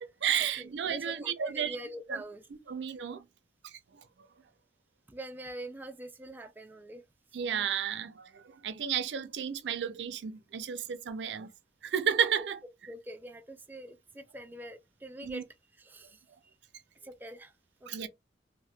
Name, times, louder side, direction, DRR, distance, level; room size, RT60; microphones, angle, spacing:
voice 1, 0.0-1.8 2.1-2.2 2.5-3.3 3.6-4.0 7.3-11.5 11.8-12.6 15.2-15.4 17.9-18.1, right 8 dB, 75° right, 0.4 m, -32 dB
voice 2, 0.6-2.4 5.1-7.0 12.9-15.4 15.8-16.2 17.0-17.5 17.8-18.1, right 1 dB, 10° right, 0.3 m, -44 dB
2.7 x 2.1 x 3.2 m
head